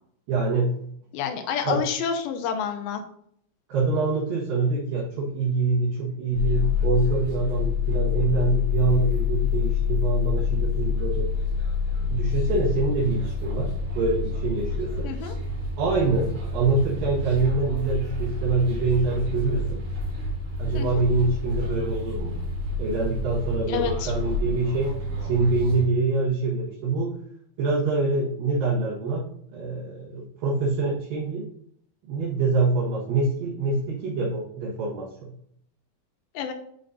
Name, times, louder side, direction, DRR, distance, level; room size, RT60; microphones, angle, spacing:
voice 1, 0.3-0.7 1.6-1.8 3.7-11.3 12.0-15.1 15.8-19.8 20.6-22.4 22.8-24.9 25.2-27.1 27.6-29.2 29.5-31.5 32.1-35.3, right 3 dB, 70° right, -7 dB, 3.1 m, -25 dB
voice 2, 1.1-3.0 15.0-15.3 20.7-21.0 23.7-24.1 36.3-36.5, left 7 dB, 85° left, 5 dB, 2.5 m, -29 dB
sound 1, 6.3-25.9, left 4 dB, 90° right, 4.0 m, -27 dB
7.9 x 5.1 x 2.7 m, 0.66 s
omnidirectional pair, 4.4 m